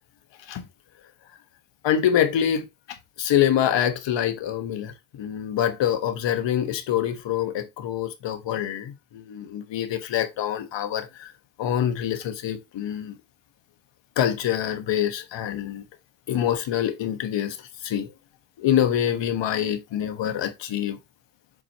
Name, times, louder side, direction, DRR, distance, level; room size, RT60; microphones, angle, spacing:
voice 1, 1.8-2.7 3.2-11.3 11.6-13.2 14.2-15.8 16.3-18.1 18.6-21.0, left 10 dB, 70° left, 1.4 m, -25 dB
7.8 x 4.9 x 2.9 m
cardioid pair, 115°, 46 cm